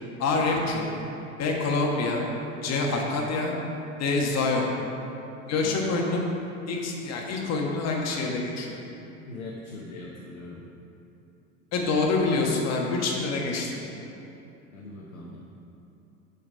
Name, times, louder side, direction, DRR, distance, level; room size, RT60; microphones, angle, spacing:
voice 1, 0.2-0.9 1.4-2.2 2.6-3.5 4.0-4.7 5.5-6.3 6.7-8.8 11.7-13.8, left 3 dB, 40° left, 0 dB, 1.6 m, -26 dB
voice 2, 9.3-10.7 14.7-15.4, left 2 dB, 85° left, -2 dB, 1.0 m, -41 dB
7.4 x 5.4 x 5.6 m, 2.8 s
hypercardioid pair, 75°, 40 cm